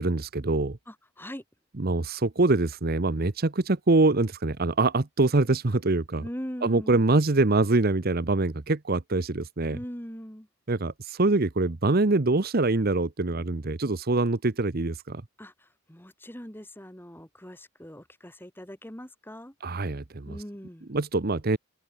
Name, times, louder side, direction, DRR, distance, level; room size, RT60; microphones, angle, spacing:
voice 1, 0.0-0.8 1.8-6.3 6.6-9.8 10.7-15.2 19.6-20.4 20.9-21.6, right 2 dB, 45° right, 0.9 m, -24 dB
voice 2, 0.9-1.4 6.2-7.1 9.7-10.5 15.4-15.5 15.9-19.5 20.3-20.9, equal, 10° left, 3.8 m, -41 dB
head